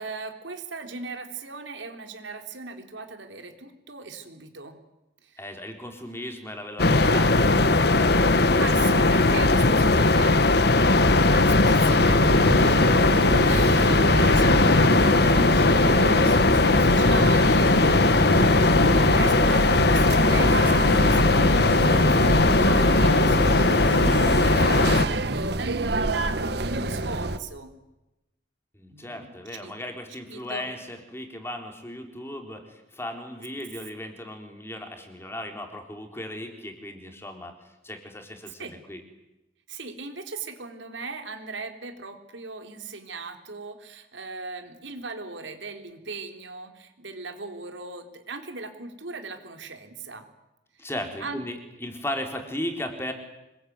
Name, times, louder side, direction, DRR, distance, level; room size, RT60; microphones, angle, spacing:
voice 1, 0.0-4.8 5.2-5.4 8.5-13.2 13.4-27.7 28.9-29.7 30.3-30.6 38.6-38.8 39.7-50.3 51.2-51.4, right 4 dB, 80° right, 5 dB, 3.8 m, -38 dB
voice 2, 5.4-8.3 28.7-39.0 50.8-53.1, left 1 dB, 15° left, 4 dB, 3.8 m, -36 dB
sound 1, 6.8-25.1, left 2 dB, 60° left, 1.4 m, -19 dB
sound 2, 12.2-27.4, right 2 dB, 60° right, 1.7 m, -29 dB
26.5 x 22.0 x 9.6 m, 0.96 s
head